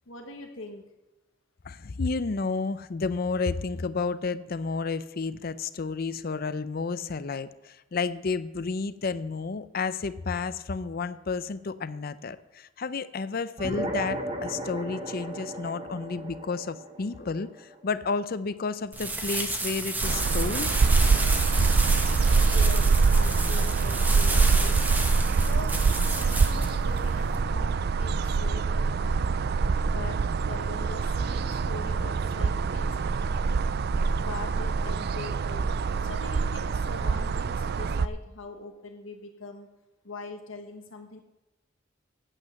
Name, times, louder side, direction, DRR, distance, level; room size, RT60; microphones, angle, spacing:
voice 1, 0.1-0.8 22.4-24.8 25.3-29.4 29.8-30.2 30.4-33.0 34.2-39.7 40.0-41.2, left 3 dB, 85° left, 4 dB, 1.4 m, -42 dB
voice 2, 1.6-20.8 21.6-21.7, left 4 dB, 50° left, 14 dB, 0.5 m, -31 dB
sound 1, 13.6-18.4, right 1 dB, 30° right, 1.5 m, -35 dB
sound 2, 18.9-27.4, right 2 dB, 10° right, 1.0 m, -32 dB
sound 3, 20.0-38.1, right 4 dB, 55° right, 0.4 m, -25 dB
9.0 x 7.8 x 7.6 m, 0.99 s
head